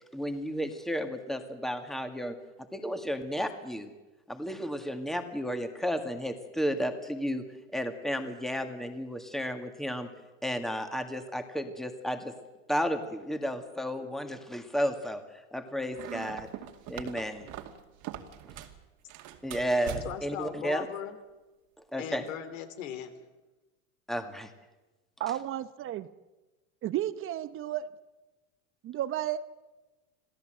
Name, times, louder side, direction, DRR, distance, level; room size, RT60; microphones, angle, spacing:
voice 1, 0.1-3.9 4.3-7.4 7.7-10.1 10.4-12.3 12.7-15.2 15.5-16.5 16.9-17.5 19.4-20.9 21.9-22.2 24.1-24.5, equal, ahead, 6 dB, 2.0 m, -33 dB
sound 1, 15.9-18.8 19.1-20.4, right 11 dB, 50° right, 2.4 m, -42 dB
voice 2, 20.0-21.2 22.0-23.1, left 9 dB, 80° left, 9 dB, 3.3 m, -38 dB
voice 3, 25.2-26.1 26.8-27.9 28.8-29.4, right 12 dB, 35° right, 14 dB, 0.9 m, -32 dB
27.0 x 16.5 x 7.9 m, 1.1 s
supercardioid pair, 125°, 38 cm